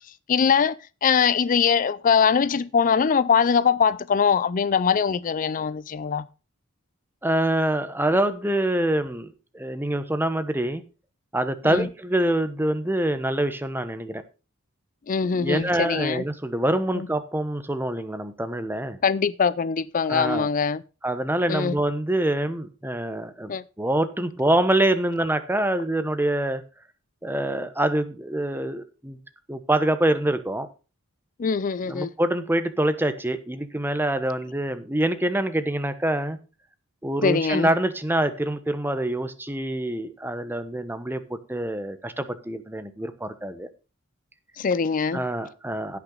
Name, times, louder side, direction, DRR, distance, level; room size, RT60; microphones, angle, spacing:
voice 1, 0.3-0.7 1.0-6.3 11.6-11.9 15.1-16.2 16.9-17.1 19.0-20.8 21.5-21.7 23.5-23.6 31.4-32.1 37.2-37.7 44.6-45.2, left 6 dB, 40° left, 0.4 m, -22 dB
voice 2, 7.2-10.8 11.3-14.2 15.2-19.0 20.1-20.5 21.0-26.6 27.2-29.2 29.5-30.7 31.8-36.4 37.0-43.7 45.1-46.0, right 1 dB, 10° right, 1.0 m, -25 dB
16.5 x 6.0 x 3.9 m
head